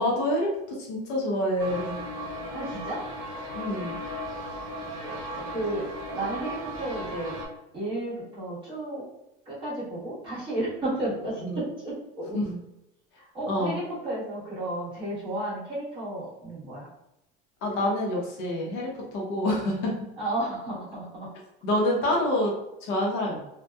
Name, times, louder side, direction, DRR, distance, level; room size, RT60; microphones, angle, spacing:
voice 1, 0.0-2.0 3.5-4.0 11.4-11.6 12.3-12.6 13.5-13.7 17.6-19.9 21.6-22.5 22.8-23.4, left 1 dB, 55° left, -2 dB, 0.7 m, -27 dB
sound 1, 1.6-7.5, equal, 80° right, 0.9 m, -36 dB
voice 2, 2.5-3.0 5.0-5.8 6.1-7.4 7.7-9.0 9.5-12.4 13.3-16.9 20.2-21.3, right 1 dB, 25° right, -9 dB, 1.1 m, -33 dB
2.7 x 2.2 x 2.2 m, 0.88 s
cardioid pair, 170°, 20 cm